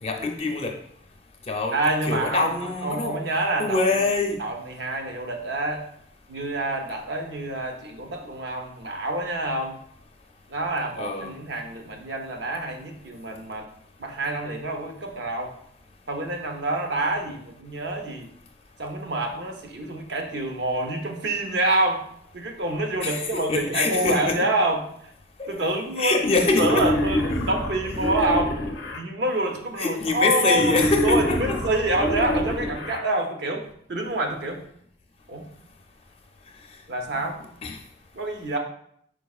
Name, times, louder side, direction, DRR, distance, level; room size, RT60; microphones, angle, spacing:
voice 1, 0.0-0.7 1.5-1.8 2.1-3.2 3.6-4.4 11.0-11.3 23.0-24.4 25.4-25.5 26.0-26.8 29.8-31.6 37.6-37.8, left 3 dB, 30° left, 2 dB, 0.5 m, -24 dB
voice 2, 1.7-4.0 4.4-5.8 6.3-9.8 10.5-13.7 14.0-15.5 16.1-18.3 18.8-22.0 22.3-24.8 25.5-26.2 26.6-28.6 29.0-30.8 31.0-33.6 33.9-34.6 35.3-35.5 36.9-37.4 38.1-38.6, right 2 dB, 65° right, 4 dB, 0.7 m, -27 dB
Wild animals, 26.5-29.0 30.5-33.0, left 1 dB, 75° left, 0.6 m, -26 dB
4.8 x 4.7 x 2.3 m, 0.68 s
head